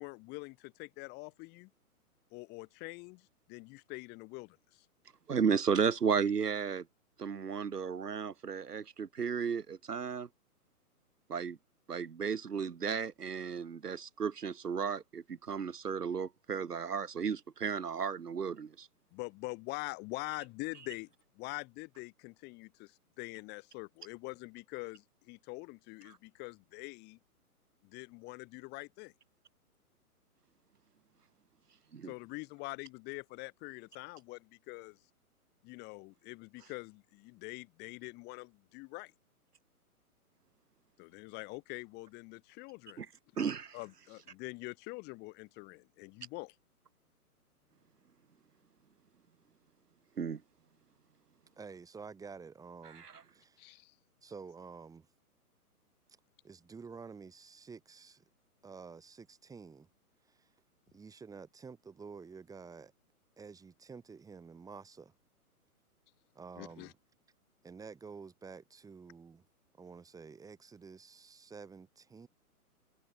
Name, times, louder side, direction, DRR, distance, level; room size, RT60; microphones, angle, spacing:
voice 1, 0.0-1.7 2.3-4.9 19.1-21.1 21.3-27.2 27.8-29.1 32.0-35.0 35.6-39.1 41.0-43.1 43.7-46.5 53.6-53.9 66.6-66.9, left 25 dB, 20° left, 1.4 m, -45 dB
voice 2, 5.3-6.8 7.2-10.3 11.3-11.6 11.9-18.9 31.9-32.1 43.0-43.1 43.4-43.8 50.2-50.4 52.9-53.1, right 6 dB, 90° right, 1.2 m, -34 dB
voice 3, 51.6-53.1 53.3-53.8 54.2-55.1 56.4-58.2 58.6-59.9 60.3-60.5 60.9-62.9 63.4-65.1 66.3-66.9 67.6-69.4 69.8-72.3, right 5 dB, 5° right, 2.4 m, -50 dB
figure-of-eight pair, 130°, 45 cm